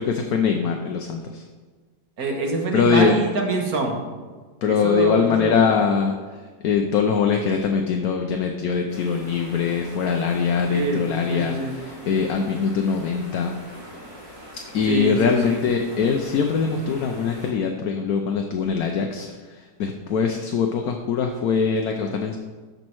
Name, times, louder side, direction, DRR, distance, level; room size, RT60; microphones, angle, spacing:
voice 1, 0.0-1.4 2.7-3.2 4.6-13.5 14.7-22.4, left 6 dB, 65° left, 3 dB, 1.1 m, -22 dB
voice 2, 2.2-4.0 4.7-5.7 10.7-11.8 14.9-15.6, right 3 dB, 55° right, 2 dB, 1.8 m, -26 dB
sound 1, 8.9-17.5, equal, 15° right, 3.1 m, -42 dB
13.0 x 5.4 x 4.6 m, 1.4 s
omnidirectional pair, 1.9 m